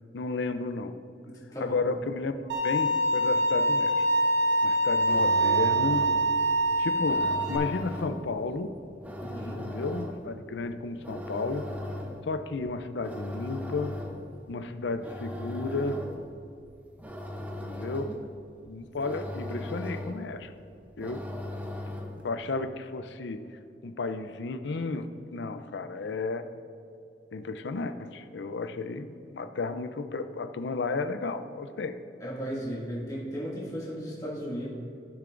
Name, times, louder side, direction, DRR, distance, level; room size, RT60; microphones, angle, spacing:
voice 1, 0.1-0.9 1.6-4.1 4.6-6.1 6.8-8.7 9.6-11.7 12.3-14.0 14.5-16.1 17.6-18.1 18.7-20.5 21.0-21.2 22.2-23.4 23.8-26.5 27.3-32.0, left 3 dB, 75° left, 10 dB, 0.5 m, -33 dB
voice 2, 1.3-1.8 9.2-9.6 32.2-34.7, equal, 20° left, -7 dB, 2.1 m, -35 dB
Bowed string instrument, 2.5-7.6, right 1 dB, 80° right, 1.3 m, -24 dB
sound 1, 5.0-22.4, left 1 dB, 10° right, 0.7 m, -39 dB
15.0 x 6.7 x 2.5 m, 2.6 s
head